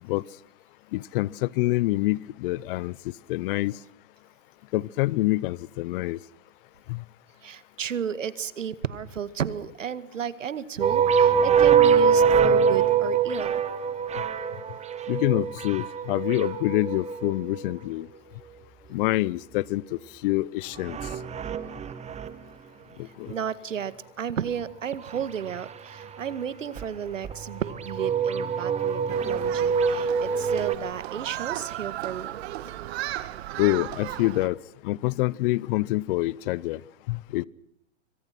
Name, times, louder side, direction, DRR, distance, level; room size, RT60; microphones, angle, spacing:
voice 1, 0.9-2.9 3.3-3.7 4.7-6.2 6.9-7.0 15.1-18.1 18.9-19.8 20.2-21.0 23.2-23.3 33.6-34.6 34.8-36.8 37.1-37.5, left 19 dB, 45° left, 24 dB, 0.9 m, -26 dB
voice 2, 7.4-13.6 23.0-32.4, right 8 dB, 90° right, 16 dB, 1.9 m, -33 dB
sound 1, 10.8-17.7 20.8-22.4 25.1-25.7 26.0-26.3 26.8-26.9 27.2-30.8, right 6 dB, 20° right, 1.9 m, -24 dB
Human group actions, 29.1-34.5, right 14 dB, 55° right, 1.9 m, -35 dB
27.0 x 25.0 x 6.1 m, 0.72 s
hypercardioid pair, 125°, 37 cm